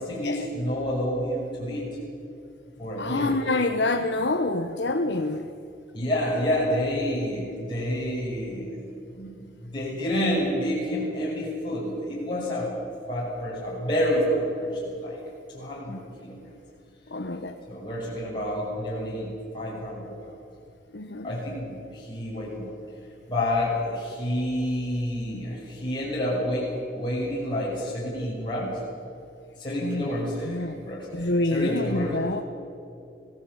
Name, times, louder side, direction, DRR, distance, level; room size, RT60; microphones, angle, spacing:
voice 1, 0.0-2.0 2.8-3.4 5.9-12.7 13.1-15.2 15.5-16.5 17.7-20.3 21.2-22.8 23.3-28.8 29.6-32.2, equal, 25° left, -6 dB, 7.3 m, -29 dB
voice 2, 3.0-5.5 15.9-16.0 17.1-17.6 20.9-21.3 29.8-30.1 30.4-30.8 31.1-32.4, left 2 dB, 75° left, 5 dB, 1.2 m, -27 dB
26.0 x 18.0 x 8.4 m, 2.6 s
head